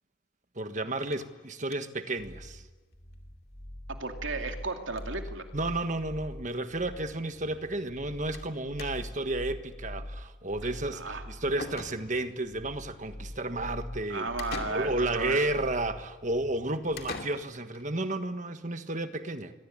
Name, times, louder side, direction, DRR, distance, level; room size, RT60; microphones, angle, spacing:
voice 1, 0.5-2.6 5.5-14.3 14.6-19.5, right 2 dB, 40° right, 1.5 m, -32 dB
sound 1, 1.1-2.1 2.4-2.5 2.8-2.9 3.1-3.2 4.4-4.6 4.9-5.3 6.1-6.2 6.5-6.6 8.3-8.5 8.8-9.3 11.1-11.2 11.6-12.4 14.4-15.3 17.0-17.8, left 4 dB, 50° left, 2.7 m, -43 dB
sound 2, 2.2-17.2, left 1 dB, 20° left, 2.2 m, -43 dB
voice 2, 4.0-5.5 10.9-11.2 14.1-15.4, right 3 dB, 75° right, 2.6 m, -34 dB
27.0 x 22.0 x 8.8 m
head